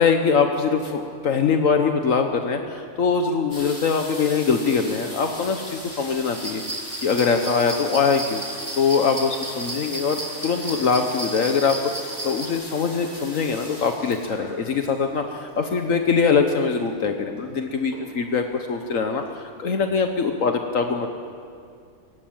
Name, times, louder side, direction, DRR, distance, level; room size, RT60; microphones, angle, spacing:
voice 1, 0.0-6.6 7.0-19.2 19.6-21.1, left 5 dB, 70° left, 5 dB, 1.5 m, -22 dB
sound 1, 3.5-16.0 16.9-17.0 17.1-17.5 17.9-18.4 19.0-19.1 19.3-19.4, equal, 30° left, 8.3 m, -40 dB
sound 2, 6.3-12.5, right 1 dB, 20° right, 2.1 m, -34 dB
21.0 x 17.0 x 8.9 m, 2.3 s
omnidirectional pair, 1.4 m